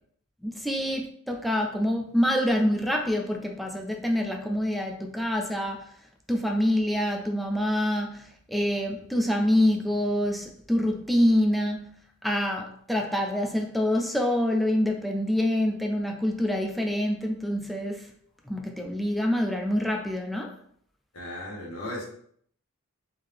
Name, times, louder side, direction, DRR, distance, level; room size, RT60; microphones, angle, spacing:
voice 1, 0.4-5.9 6.3-11.9 12.2-18.1 18.4-20.6, left 1 dB, ahead, 2 dB, 0.4 m, -26 dB
voice 2, 21.1-22.0, left 1 dB, 85° left, -3 dB, 1.4 m, -36 dB
3.6 x 2.8 x 3.4 m, 0.62 s
head